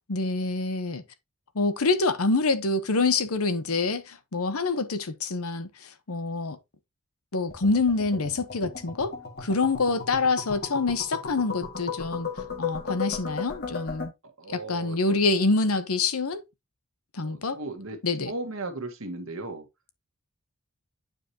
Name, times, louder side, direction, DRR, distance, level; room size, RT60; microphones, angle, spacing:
voice 1, 0.1-1.0 1.5-6.6 7.3-12.3 12.6-14.1 14.5-16.4 17.1-17.6 18.0-18.3, left 3 dB, 85° left, 0.9 m, -26 dB
sound 1, 7.5-14.1, left 6 dB, 50° left, 1.9 m, -35 dB
voice 2, 14.4-15.2 17.2-18.0 18.3-19.7, right 2 dB, 70° right, 1.6 m, -36 dB
9.0 x 4.9 x 2.8 m
head